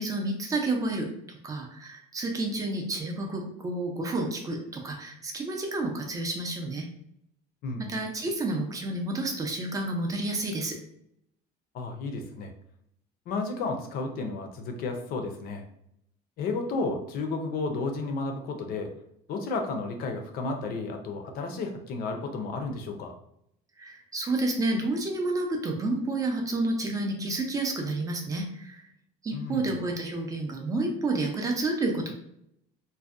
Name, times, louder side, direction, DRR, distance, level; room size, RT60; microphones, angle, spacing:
voice 1, 0.0-6.9 7.9-10.8 23.8-28.8 29.2-32.1, right 2 dB, 20° right, 2 dB, 0.4 m, -30 dB
voice 2, 7.6-7.9 11.7-12.5 13.3-15.6 16.4-18.9 19.3-23.1 29.3-29.7, left 3 dB, 55° left, 4 dB, 0.5 m, -32 dB
2.5 x 2.1 x 2.3 m, 0.73 s
cardioid pair, 145°, 19 cm